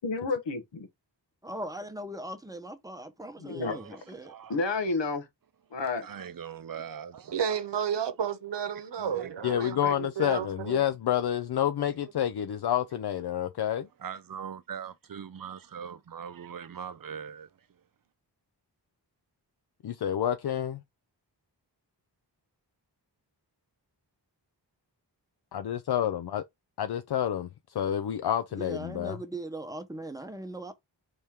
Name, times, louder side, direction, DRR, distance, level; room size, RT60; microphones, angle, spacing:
voice 1, 0.0-0.9 3.4-3.8 4.5-5.3 5.7-6.1, left 3 dB, 85° left, 1.1 m, -30 dB
voice 2, 1.4-4.3 28.6-30.7, right 1 dB, 10° right, 0.9 m, -39 dB
voice 3, 3.4-4.6 5.7-7.3 9.0-9.3 9.7-9.9 11.8-12.1 14.0-17.8, right 7 dB, 55° right, 0.5 m, -42 dB
voice 4, 7.3-10.8, right 8 dB, 75° right, 0.8 m, -32 dB
voice 5, 9.4-13.9 19.8-20.8 25.5-26.5 26.8-29.2, left 10 dB, 65° left, 0.5 m, -29 dB
4.3 x 3.3 x 3.5 m
wide cardioid pair, 95°, 42 cm